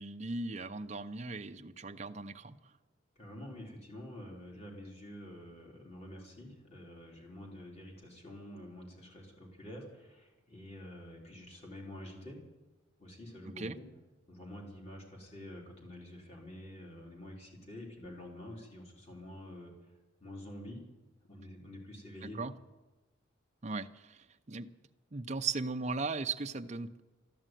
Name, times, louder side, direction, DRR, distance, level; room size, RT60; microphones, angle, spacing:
voice 1, 0.0-2.6 13.6-13.8 22.4-22.5 23.6-24.7 25.1-27.0, right 4 dB, 35° right, 6 dB, 0.6 m, -37 dB
voice 2, 3.2-12.4 13.0-13.8 14.3-19.9 20.2-20.8 21.2-22.4, left 1 dB, 30° left, 0 dB, 3.9 m, -48 dB
13.5 x 11.0 x 9.1 m, 1.1 s
head